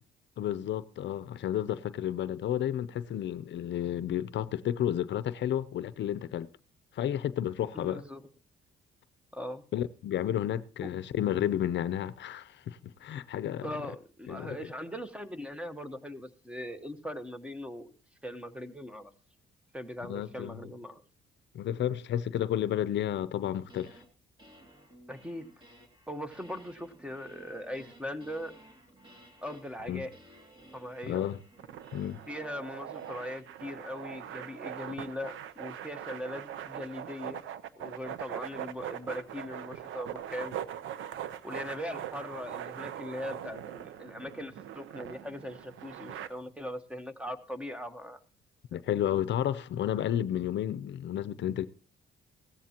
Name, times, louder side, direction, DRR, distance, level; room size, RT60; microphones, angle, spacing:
voice 1, 0.4-6.5 6.9-8.0 9.7-13.7 14.3-14.6 20.1-20.6 21.5-24.0 29.9-30.1 31.1-31.4 31.9-32.2 48.7-51.7, left 11 dB, 65° left, 0.6 m, -31 dB
voice 2, 7.7-8.2 9.3-9.6 10.8-10.9 13.6-17.9 18.2-19.1 19.7-21.0 25.1-25.5 26.1-28.5 29.4-30.1 30.7-31.3 32.3-37.4 37.8-40.5 41.4-48.2, left 1 dB, 5° right, 1.1 m, -40 dB
sound 1, 23.7-24.1 24.4-34.8, right 1 dB, 25° right, 2.4 m, -57 dB
sound 2, 31.6-46.3, right 10 dB, 80° right, 0.8 m, -41 dB
16.5 x 14.0 x 2.9 m
cardioid pair, 90°, 20 cm